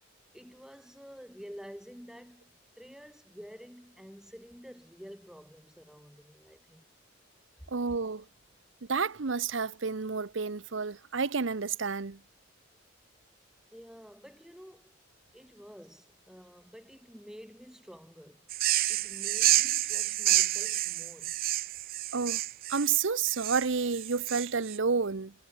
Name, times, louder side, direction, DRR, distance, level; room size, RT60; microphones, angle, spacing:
voice 1, 0.3-2.5 2.8-6.9 13.7-14.9 15.3-18.5 18.9-21.4, equal, 5° right, 5.8 m, -49 dB
voice 2, 7.7-8.2 8.9-12.2 22.1-22.4 22.7-25.3, right 5 dB, 70° right, 0.8 m, -30 dB
sound 1, 18.5-24.8, right 16 dB, 45° right, 0.3 m, -29 dB
head